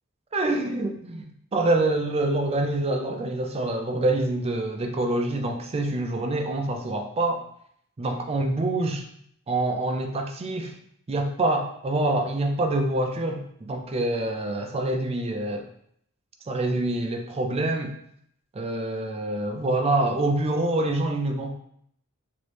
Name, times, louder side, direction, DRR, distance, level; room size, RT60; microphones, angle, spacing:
voice 1, 0.3-7.4 8.0-9.0 9.5-10.7 11.1-15.7 16.5-17.9 18.5-21.6, right 2 dB, 25° right, 4 dB, 0.4 m, -26 dB
3.1 x 2.6 x 3.2 m, 0.68 s
head